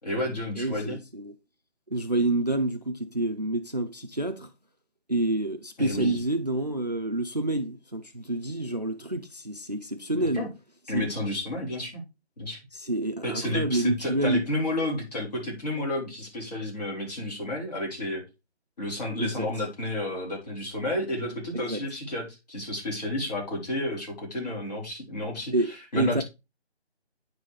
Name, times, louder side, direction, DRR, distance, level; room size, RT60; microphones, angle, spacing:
voice 1, 0.0-1.0 5.8-6.2 10.3-10.5 10.9-12.0 12.4-12.6 13.2-18.2 18.8-25.5 25.9-26.2, left 1 dB, 35° left, 3.9 m, -31 dB
voice 2, 0.5-1.3 1.9-4.5 5.1-10.5 10.9-11.1 12.7-14.4 19.2-19.5 21.7-21.8 25.5-26.2, right 2 dB, 40° right, 0.5 m, -28 dB
9.4 x 4.1 x 4.8 m
figure-of-eight pair, 170°, 34 cm